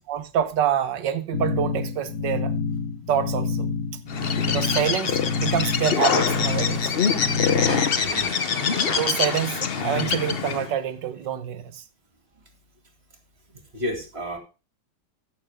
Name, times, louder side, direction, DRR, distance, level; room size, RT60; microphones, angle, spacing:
voice 1, 0.1-2.5 3.1-3.7 4.4-6.9 7.5-7.8 8.9-11.8, right 9 dB, 90° right, 1.7 m, -26 dB
sound 1, 1.3-8.1, left 4 dB, 70° left, 2.1 m, -28 dB
Bird, 4.1-10.7, left 6 dB, 45° left, 0.8 m, -24 dB
sound 2, 7.7-10.9, left 1 dB, 15° left, 3.7 m, -39 dB
voice 2, 7.9-8.3 13.5-14.4, left 1 dB, 35° right, 2.7 m, -32 dB
15.5 x 6.9 x 3.5 m
omnidirectional pair, 1.9 m